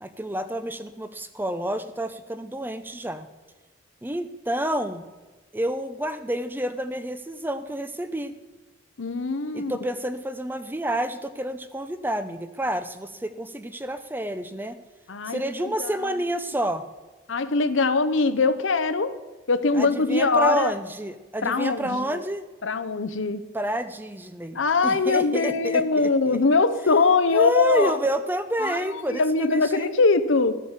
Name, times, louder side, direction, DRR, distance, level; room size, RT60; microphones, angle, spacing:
voice 1, 0.0-3.3 4.0-5.0 5.5-8.3 9.5-14.8 15.2-16.9 19.7-22.5 23.5-26.4 27.3-29.9, right 1 dB, 10° right, 11 dB, 0.6 m, -29 dB
voice 2, 9.0-9.7 15.1-16.1 17.3-19.1 19.5-20.7 21.4-22.2 22.6-23.4 24.5-28.0 28.6-28.8 29.1-30.6, left 4 dB, 70° left, 13 dB, 0.8 m, -22 dB
14.5 x 8.4 x 7.3 m, 1.3 s
head